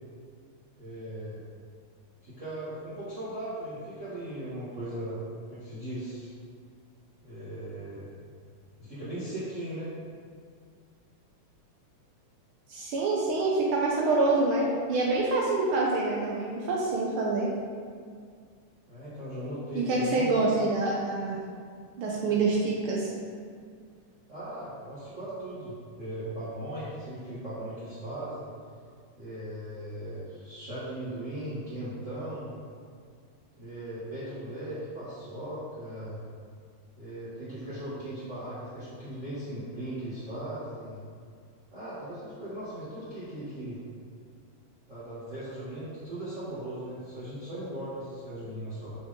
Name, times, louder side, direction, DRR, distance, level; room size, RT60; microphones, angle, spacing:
voice 1, 0.8-1.4 2.2-5.2 5.5-6.3 7.2-8.2 8.8-9.9 18.9-20.4 24.3-28.5 29.2-32.6 33.6-36.2 37.0-41.0 41.7-43.8 44.9-49.0, right 1 dB, 30° right, -13 dB, 1.9 m, -38 dB
voice 2, 12.7-17.5 19.7-21.4 22.0-23.1, right 3 dB, 90° right, -3 dB, 1.1 m, -26 dB
7.8 x 6.0 x 3.7 m, 2.1 s
omnidirectional pair, 3.5 m